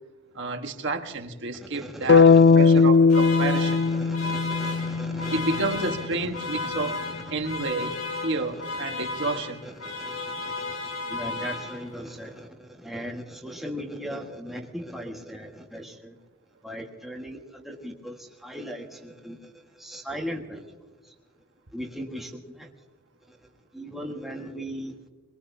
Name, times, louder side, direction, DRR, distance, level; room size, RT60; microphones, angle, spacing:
voice 1, 0.3-3.8 5.3-7.0 7.3-8.0 8.2-9.6, right 3 dB, 55° right, 5 dB, 1.4 m, -30 dB
voice 2, 1.5-2.8 3.4-16.2 16.6-20.7 21.0-21.1 21.7-22.7 23.3-25.0, equal, ahead, 0 dB, 1.6 m, -39 dB
sound 1, 2.1-6.1, left 5 dB, 55° left, 0.5 m, -19 dB
sound 2, 3.1-12.1, left 3 dB, 80° left, 2.1 m, -34 dB
23.0 x 21.5 x 2.7 m, 1.3 s
head